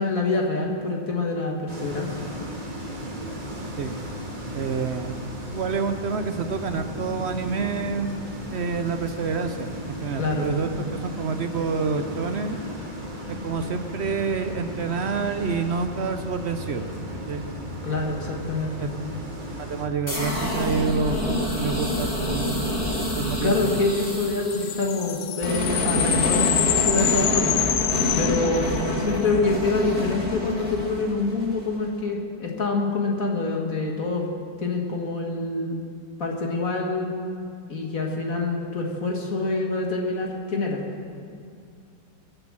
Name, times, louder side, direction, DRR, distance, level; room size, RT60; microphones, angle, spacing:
voice 1, 0.0-2.2 10.2-10.5 17.8-18.9 23.4-27.9 28.1-34.2 34.6-35.9 36.2-37.1 37.7-40.8, left 3 dB, 50° left, 0 dB, 1.9 m, -26 dB
sound 1, 1.7-19.9, equal, 25° right, 2.1 m, -35 dB
voice 2, 4.5-8.2 8.5-12.6 13.4-16.9 17.3-17.4 18.8-18.9 19.7-22.7 23.2-23.8, right 5 dB, 60° right, 8 dB, 0.7 m, -28 dB
sound 2, 20.1-31.9, left 1 dB, 30° left, 2.9 m, -27 dB
sound 3, 24.5-29.1, left 12 dB, 70° left, 1.2 m, -26 dB
22.0 x 7.9 x 7.4 m, 2.3 s
omnidirectional pair, 1.9 m